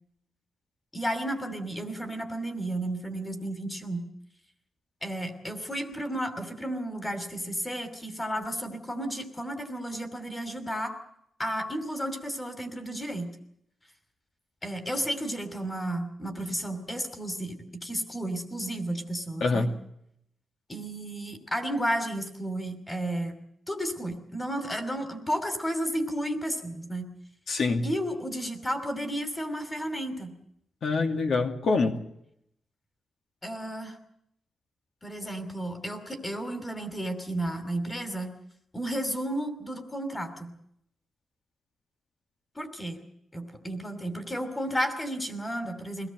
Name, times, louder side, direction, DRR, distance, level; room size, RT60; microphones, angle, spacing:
voice 1, 0.9-4.1 5.0-10.9 11.4-13.3 14.6-19.7 20.7-23.4 23.7-27.1 27.8-30.3 33.4-34.0 35.0-38.3 38.7-40.5 42.5-43.0 43.3-46.1, right 1 dB, 15° left, 9 dB, 2.9 m, -32 dB
voice 2, 19.4-19.8 27.5-27.9 30.8-32.0, left 3 dB, 60° left, 5 dB, 2.5 m, -25 dB
23.5 x 18.0 x 7.7 m, 0.74 s
wide cardioid pair, 170°, 0 cm